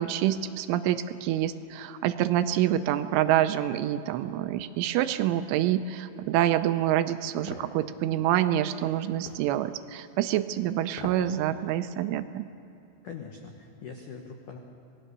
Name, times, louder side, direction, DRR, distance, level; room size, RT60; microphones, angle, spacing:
voice 1, 0.0-12.5, right 12 dB, 80° right, 10 dB, 3.0 m, -27 dB
sound 1, 7.5-7.7 9.3-9.5 10.9-11.3 11.7-11.8, left 4 dB, 70° left, 4.2 m, -41 dB
voice 2, 13.0-14.6, left 5 dB, 85° left, 2 dB, 1.8 m, -42 dB
26.5 x 19.0 x 6.7 m, 2.9 s
omnidirectional pair, 5.9 m